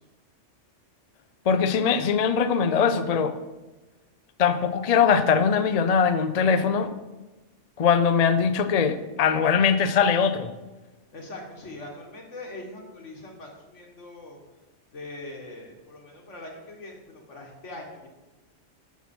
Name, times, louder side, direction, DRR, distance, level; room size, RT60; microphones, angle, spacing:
voice 1, 1.5-3.3 4.4-6.9 7.8-10.5, left 6 dB, 45° left, 10 dB, 0.5 m, -21 dB
voice 2, 11.1-14.4 14.9-18.1, left 2 dB, 75° left, 0 dB, 2.0 m, -42 dB
13.0 x 5.9 x 4.4 m, 1.1 s
omnidirectional pair, 1.2 m